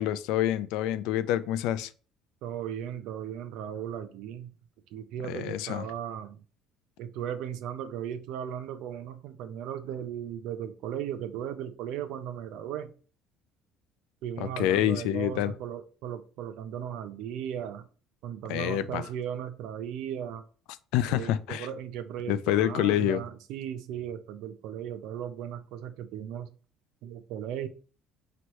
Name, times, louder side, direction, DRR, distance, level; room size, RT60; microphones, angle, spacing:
voice 1, 0.0-1.9 5.3-5.8 14.6-15.5 18.5-19.0 20.9-21.7 22.3-23.2, left 12 dB, 80° left, 0.3 m, -27 dB
voice 2, 2.4-4.5 4.9-6.4 7.0-12.9 14.2-17.9 18.2-20.5 21.1-26.5 27.0-27.7, right 9 dB, 75° right, 0.5 m, -37 dB
4.6 x 3.0 x 3.0 m
cardioid pair, 115°, 0 cm